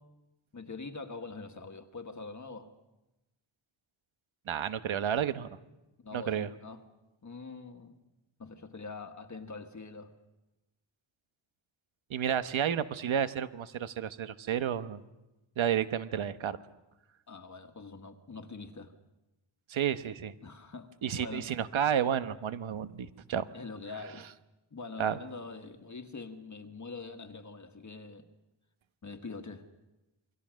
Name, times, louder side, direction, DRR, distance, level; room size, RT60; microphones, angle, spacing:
voice 1, 0.5-2.7 6.0-6.8 7.2-8.0 8.4-10.1 17.3-18.9 20.4-21.5 23.5-24.3 24.7-28.3 29.0-29.7, left 4 dB, 35° left, 6 dB, 1.5 m, -44 dB
voice 2, 4.5-5.5 6.1-6.5 12.1-15.0 15.6-16.6 19.7-20.3 21.0-23.5 25.0-25.2, right 9 dB, 70° right, 11 dB, 1.1 m, -31 dB
28.0 x 23.5 x 6.3 m, 1.0 s
wide cardioid pair, 150°, 49 cm